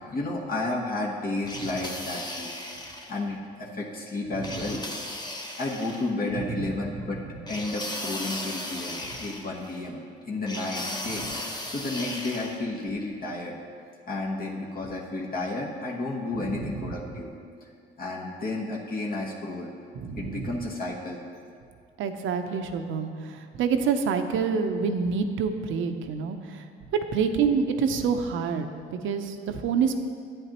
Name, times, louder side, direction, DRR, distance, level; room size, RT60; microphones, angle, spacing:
voice 1, 0.0-2.5 3.1-4.8 5.6-7.2 7.5-10.0 10.2-13.6 14.1-17.3 17.6-17.7 18.0-19.7 20.2-21.2, left 2 dB, 45° left, -3 dB, 1.2 m, -32 dB
sound 1, 1.5-3.2 4.4-6.1 7.5-9.8 10.5-12.6, left 1 dB, 20° left, 1.0 m, -36 dB
voice 2, 16.4-16.8 20.0-20.5 22.0-26.6 27.1-28.7 28.9-30.0, right 6 dB, 80° right, 7 dB, 0.7 m, -27 dB
11.0 x 9.1 x 3.0 m, 2.2 s
cardioid pair, 90°, 20 cm